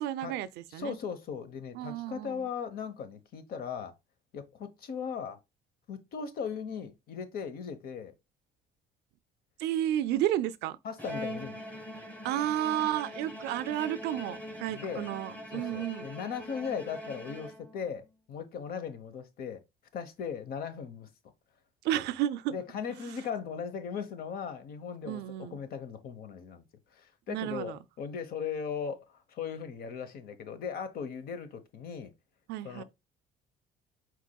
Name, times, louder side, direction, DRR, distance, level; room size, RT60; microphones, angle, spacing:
voice 1, 0.0-1.0 1.7-2.5 9.6-10.8 12.2-16.1 21.8-22.6 23.0-23.1 25.1-25.6 27.3-27.8 32.5-32.8, right 12 dB, 80° right, 0.5 m, -32 dB
voice 2, 0.7-3.9 4.3-5.4 5.9-8.1 10.8-11.6 14.7-15.1 15.5-19.6 19.9-21.1 22.5-26.6 26.9-32.1 32.6-32.8, left 6 dB, 60° left, 1.0 m, -38 dB
Bowed string instrument, 11.0-17.9, left 1 dB, 10° left, 1.1 m, -42 dB
4.7 x 4.3 x 2.3 m
cardioid pair, 110°, 17 cm